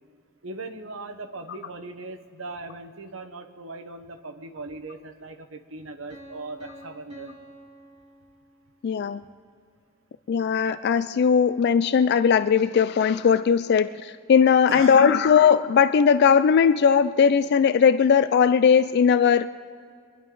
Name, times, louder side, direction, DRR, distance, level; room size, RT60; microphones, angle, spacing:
voice 1, 0.4-7.4 14.7-15.2, right 3 dB, 70° right, 6 dB, 1.1 m, -39 dB
Piano, 6.1-8.9, equal, 30° right, 2.1 m, -48 dB
voice 2, 8.8-9.2 10.3-19.5, left 7 dB, 50° left, 13 dB, 0.3 m, -19 dB
25.0 x 11.0 x 3.9 m, 2.2 s
head